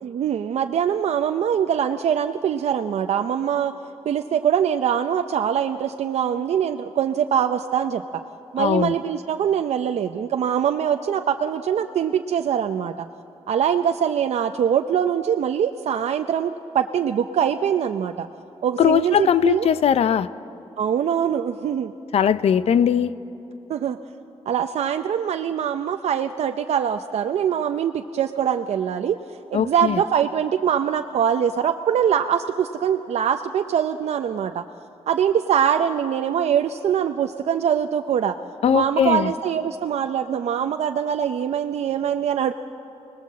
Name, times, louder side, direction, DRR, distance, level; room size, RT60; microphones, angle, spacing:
voice 1, 0.0-3.7 4.1-8.0 8.5-12.9 13.5-18.3 18.6-19.7 20.8-21.9 23.7-24.0 24.5-29.2 29.5-34.6 35.1-38.3 38.7-42.5, right 8 dB, 80° right, 6 dB, 0.6 m, -23 dB
voice 2, 8.6-8.9 18.8-20.3 22.1-23.1 29.5-30.0 38.6-39.3, left 8 dB, 70° left, 15 dB, 0.6 m, -19 dB
29.0 x 19.5 x 7.5 m, 2.9 s
wide cardioid pair, 150°, 11 cm